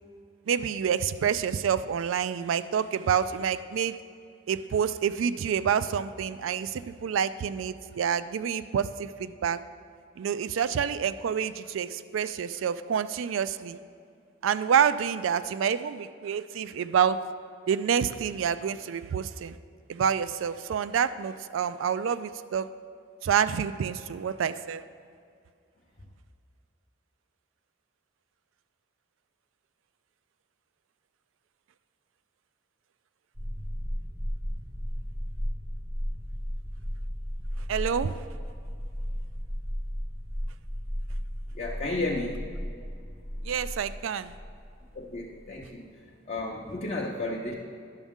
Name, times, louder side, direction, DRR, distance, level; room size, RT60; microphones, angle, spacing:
voice 1, 0.5-4.0 4.5-9.6 10.2-13.8 14.4-17.2 17.7-19.6 19.9-22.7 23.2-24.8 37.7-38.2 43.4-44.3, right 7 dB, 75° right, 14 dB, 0.3 m, -28 dB
sound 1, 33.3-45.6, equal, ahead, 0.7 m, -35 dB
voice 2, 41.5-42.4 44.9-45.9 46.3-47.5, left 2 dB, 35° left, -3 dB, 0.6 m, -32 dB
10.5 x 7.2 x 3.6 m, 2.3 s
head